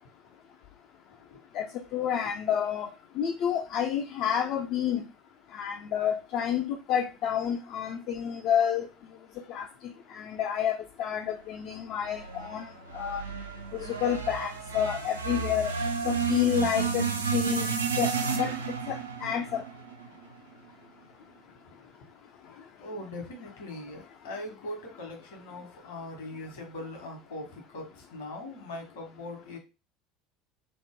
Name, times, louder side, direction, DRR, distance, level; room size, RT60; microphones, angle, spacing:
voice 1, 1.9-2.9 3.2-5.0 5.5-8.9 9.5-9.7 10.1-12.7 12.9-13.2 13.8-15.7 16.0-17.1 17.3-17.7 18.0-18.5 18.9-19.6, left 9 dB, 55° left, 0.3 m, -29 dB
sound 1, 12.0-20.4, right 5 dB, 85° right, 0.3 m, -32 dB
voice 2, 22.8-29.6, left 1 dB, 75° left, 1.1 m, -41 dB
2.9 x 2.0 x 3.5 m
figure-of-eight pair, 70°, 0 cm